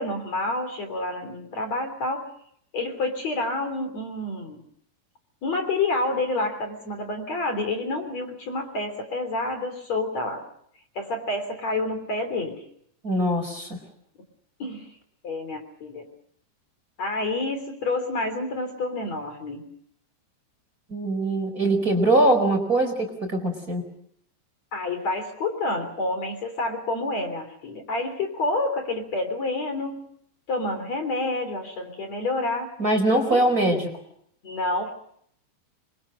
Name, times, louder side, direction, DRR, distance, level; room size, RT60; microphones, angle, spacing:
voice 1, 0.0-2.2 2.7-4.6 5.4-10.4 11.0-12.6 14.6-14.9 15.2-16.0 17.0-19.6 24.7-30.0 30.5-32.7 33.3-33.4 34.4-35.0, left 2 dB, 45° left, 7 dB, 4.3 m, -28 dB
voice 2, 13.0-13.8 20.9-23.8 32.8-33.9, right 1 dB, 20° right, 5 dB, 4.8 m, -22 dB
28.0 x 24.0 x 6.5 m, 0.69 s
omnidirectional pair, 4.6 m